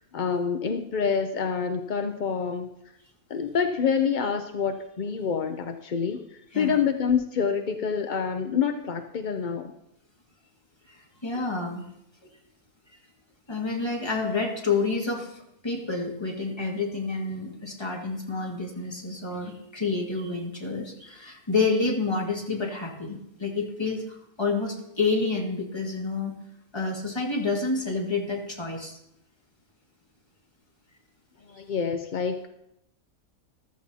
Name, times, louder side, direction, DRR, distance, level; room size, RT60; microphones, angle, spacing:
voice 1, 0.0-2.7 3.3-6.2 6.6-9.7 31.5-32.5, left 6 dB, 60° left, 6 dB, 0.5 m, -27 dB
voice 2, 10.9-11.8 13.5-15.4 15.6-26.3 26.7-29.0, left 3 dB, 15° left, -1 dB, 2.0 m, -29 dB
14.5 x 13.0 x 2.8 m, 0.80 s
omnidirectional pair, 1.6 m